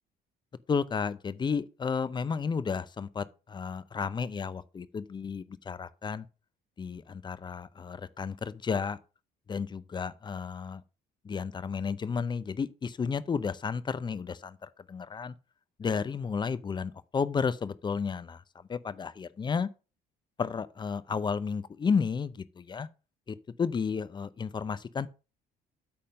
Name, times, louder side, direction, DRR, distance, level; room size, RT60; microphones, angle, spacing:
voice 1, 0.7-6.3 6.8-9.0 9.5-10.8 11.2-15.3 15.8-18.4 18.7-19.7 20.4-22.9 23.3-25.1, left 5 dB, 25° left, 0.6 m, -32 dB
8.7 x 3.6 x 6.5 m
cardioid pair, 110°, 17 cm